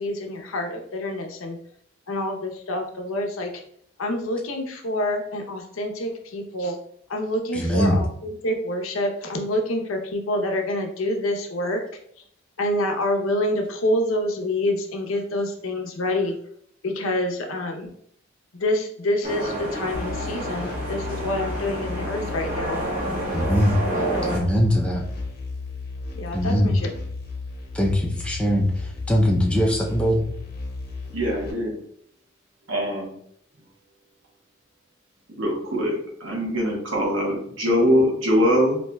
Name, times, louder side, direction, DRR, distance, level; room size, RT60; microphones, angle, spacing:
voice 1, 0.0-1.6 2.1-3.6 4.0-6.8 7.1-11.8 12.6-16.4 16.8-17.9 18.5-22.8 24.1-24.4 26.1-26.9, left 1 dB, 85° left, 3 dB, 0.7 m, -27 dB
voice 2, 7.5-8.0 23.3-23.7 24.3-25.0 26.3-26.7 27.7-30.3, equal, 5° left, -1 dB, 0.4 m, -21 dB
sound 1, 19.2-24.4, right 1 dB, 40° right, 1.1 m, -29 dB
sound 2, 19.9-31.5, left 3 dB, 45° left, 0.8 m, -35 dB
voice 3, 31.1-31.8 32.7-33.1 35.4-38.8, equal, 70° right, -1 dB, 1.1 m, -22 dB
4.2 x 2.8 x 2.2 m, 0.67 s
head